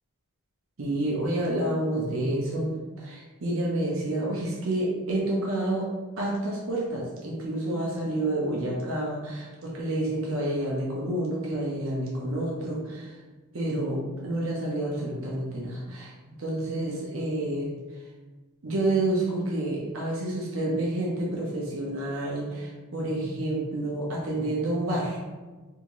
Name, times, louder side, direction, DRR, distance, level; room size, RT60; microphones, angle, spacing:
voice 1, 0.8-5.9 6.2-13.1 13.5-16.1 16.4-17.7 18.6-25.2, right 1 dB, 65° right, -4 dB, 0.8 m, -29 dB
3.6 x 2.7 x 3.0 m, 1.3 s
head